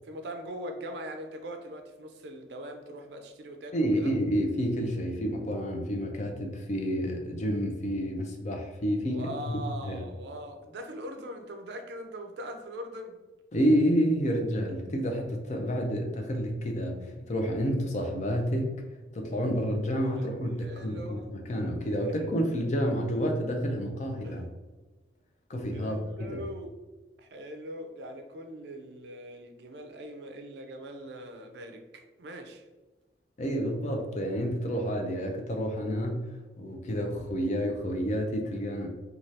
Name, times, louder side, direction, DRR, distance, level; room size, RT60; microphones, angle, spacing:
voice 1, 0.0-4.1 9.1-13.2 20.2-20.3 20.6-21.3 22.0-22.1 24.2-24.4 25.7-26.7 27.2-32.7, equal, 70° right, 5 dB, 0.4 m, -41 dB
voice 2, 3.7-10.0 13.5-18.8 19.1-24.4 25.5-26.0 26.3-26.4 33.4-38.9, equal, 40° left, 3 dB, 0.4 m, -29 dB
2.7 x 2.3 x 3.2 m, 1.2 s
head